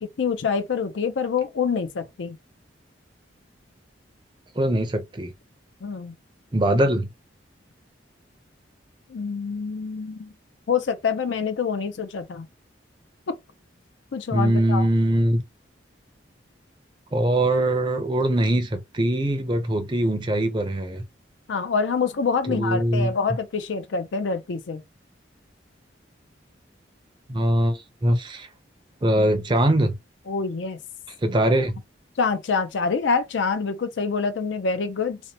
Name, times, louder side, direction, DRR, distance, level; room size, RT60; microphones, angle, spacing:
voice 1, 0.0-2.4 5.8-6.1 9.1-10.3 10.7-12.5 13.3-13.4 14.1-14.9 21.5-24.8 30.3-30.8 32.2-35.2, left 5 dB, 75° left, 0.5 m, -26 dB
voice 2, 4.6-5.3 6.5-7.1 14.3-15.4 17.1-21.0 22.5-23.1 27.3-28.5 29.0-29.9 31.2-31.8, right 1 dB, 25° right, 0.4 m, -22 dB
2.8 x 2.1 x 2.7 m
head